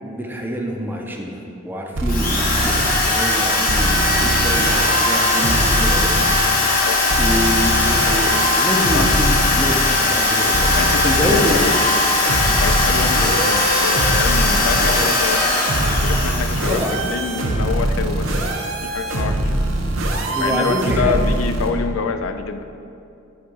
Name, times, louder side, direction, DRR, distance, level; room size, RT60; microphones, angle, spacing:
voice 1, 0.0-6.9 7.2-11.6 16.7-17.0 20.3-21.2, equal, 10° right, 1 dB, 0.6 m, -26 dB
sound 1, 1.9-2.9 3.7-6.2 7.1-9.7 10.5-21.7, right 1 dB, 65° right, 0.8 m, -23 dB
Drill, 2.1-17.3, left 2 dB, 45° left, 1.3 m, -19 dB
voice 2, 10.6-11.9 12.6-15.5 15.8-18.3 18.8-19.5 20.4-22.7, left 5 dB, 75° left, 8 dB, 0.4 m, -26 dB
7.6 x 3.9 x 5.5 m, 2.5 s
head